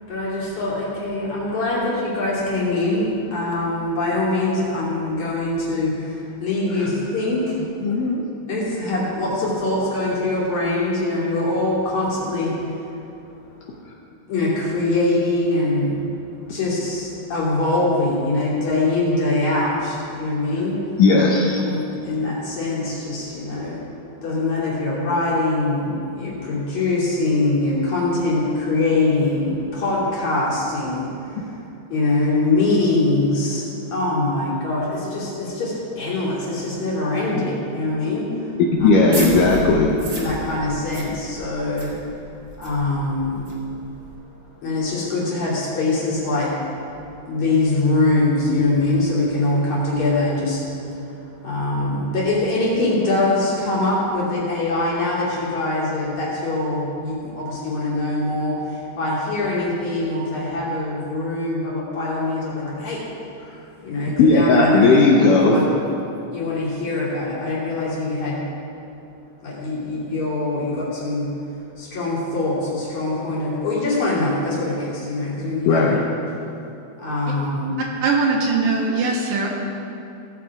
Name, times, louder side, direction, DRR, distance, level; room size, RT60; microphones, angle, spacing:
voice 1, 0.1-7.6 8.0-8.1 8.5-13.0 14.3-16.0 16.4-20.8 21.6-23.8 24.2-31.6 31.9-38.9 40.2-42.0 42.6-43.6 44.6-63.1 63.8-65.0 65.5-65.6 66.3-68.5 69.4-71.4 71.8-75.9 77.0-77.8, left 2 dB, 50° left, -7 dB, 3.9 m, -23 dB
voice 2, 7.8-8.2 21.0-21.6 38.8-39.9 64.2-65.6 75.7-76.0, left 3 dB, 70° left, -2 dB, 2.1 m, -15 dB
sound 1, 38.8-44.2, right 1 dB, 35° right, 1.6 m, -33 dB
voice 3, 78.0-79.6, right 4 dB, 70° right, -1 dB, 2.8 m, -20 dB
17.0 x 7.6 x 4.9 m, 2.7 s
omnidirectional pair, 4.5 m